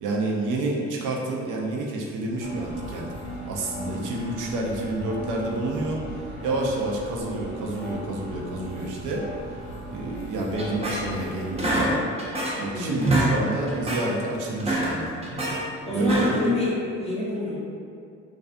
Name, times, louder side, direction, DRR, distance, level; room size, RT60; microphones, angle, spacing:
voice 1, 0.0-3.1 3.5-6.0 6.4-9.2 9.9-12.0 12.6-15.1 15.9-16.3, right 2 dB, 85° right, -2 dB, 0.5 m, -29 dB
sound 1, 2.4-11.7, right 1 dB, 75° left, 0.6 m, -37 dB
sound 2, 10.6-11.3 11.6-12.7 13.0-13.3 13.7-14.1 14.5-15.6 16.0-16.5, right 1 dB, 20° right, 0.5 m, -26 dB
voice 2, 12.7-13.2 15.9-17.6, left 2 dB, 20° left, -7 dB, 0.7 m, -27 dB
2.4 x 2.3 x 2.5 m, 2.3 s
cardioid pair, 90°, 30 cm